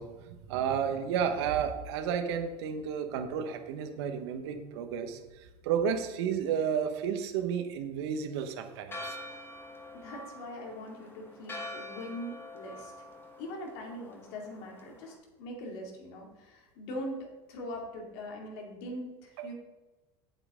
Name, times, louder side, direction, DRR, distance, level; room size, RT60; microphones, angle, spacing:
voice 1, 0.0-9.2 19.4-19.5, right 7 dB, 80° right, 7 dB, 1.1 m, -32 dB
Church bell, 8.9-15.2, left 1 dB, 15° left, 1.5 m, -45 dB
voice 2, 9.9-13.1 13.4-19.5, left 1 dB, 75° left, 0 dB, 2.5 m, -42 dB
8.8 x 7.7 x 3.7 m, 1.1 s
supercardioid pair, 105°, 14 cm